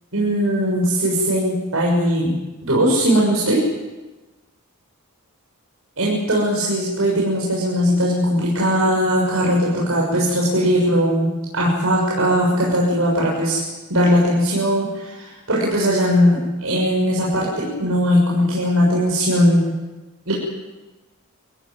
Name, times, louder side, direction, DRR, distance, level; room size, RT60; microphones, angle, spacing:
voice 1, 0.1-2.4 2.7-3.6 6.0-13.6 13.9-19.6 20.3-20.4, equal, 70° right, -4 dB, 7.0 m, -19 dB
28.0 x 16.5 x 9.6 m, 1.1 s
head